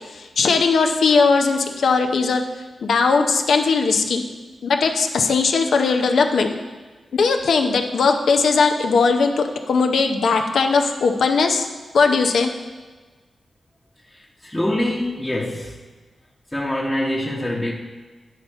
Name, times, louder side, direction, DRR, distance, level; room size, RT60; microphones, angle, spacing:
voice 1, 0.1-2.4 2.8-4.2 4.6-6.5 7.1-11.7 11.9-12.5, left 4 dB, 80° left, 4 dB, 0.6 m, -19 dB
voice 2, 14.1-15.8 16.5-17.7, left 1 dB, 15° left, -5 dB, 1.0 m, -25 dB
9.4 x 4.1 x 4.4 m, 1.3 s
cardioid pair, 50°, 0 cm